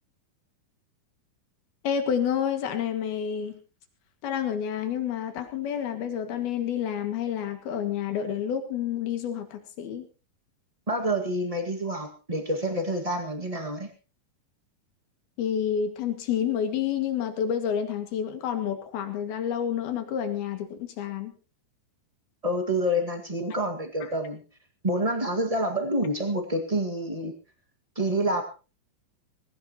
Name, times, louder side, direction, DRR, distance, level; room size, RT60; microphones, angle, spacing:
voice 1, 1.8-3.6 4.2-10.1 15.4-21.3, left 8 dB, 90° left, 7 dB, 4.0 m, -29 dB
voice 2, 10.9-13.9 22.4-24.4 24.8-27.3 27.9-28.4, right 1 dB, 55° right, 5 dB, 0.4 m, -27 dB
21.0 x 18.0 x 3.0 m, 0.34 s
omnidirectional pair, 4.2 m